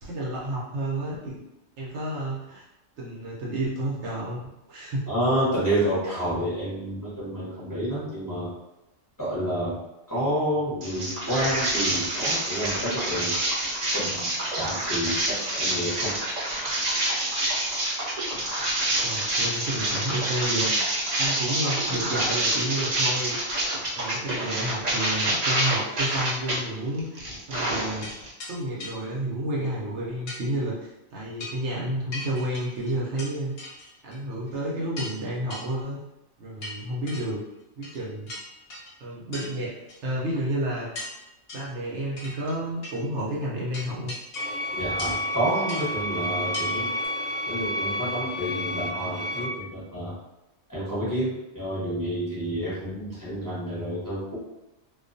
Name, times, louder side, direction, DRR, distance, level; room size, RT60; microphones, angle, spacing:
voice 1, 0.0-1.4 1.8-2.7 3.0-5.0 19.0-23.4 23.9-28.1 28.5-33.5 34.0-36.0 36.4-37.4 37.8-38.3 39.0-39.7 40.0-40.9 41.5-44.1, right 1 dB, 65° right, -5 dB, 0.8 m, -31 dB
voice 2, 5.1-8.5 9.2-9.8 10.1-13.3 13.9-15.1 15.5-16.1 44.8-46.9 47.5-50.1 50.7-54.4, right 1 dB, 20° left, -10 dB, 0.8 m, -29 dB
sound 1, 10.8-26.6 27.0-28.3, right 1 dB, 50° right, 0.5 m, -27 dB
sound 2, 28.0-28.1 28.4-28.5 28.8-28.9 30.3-30.4 31.4-31.7 32.1-33.3 33.6-34.2 34.5-34.6 35.0-35.2 35.5-35.6 36.6-37.2 37.8-38.0 38.3-38.9 39.3-39.5 39.9-40.0 40.9-41.2 41.5-41.7 42.2-42.6 42.8-43.0 43.7-44.6 45.0-45.3 45.7-45.9 46.5-46.7 47.0-47.1, left 2 dB, 55° left, 0.8 m, -38 dB
sound 3, 44.4-49.4, equal, 80° left, 0.3 m, -30 dB
2.3 x 2.2 x 2.5 m, 0.92 s
omnidirectional pair, 1.3 m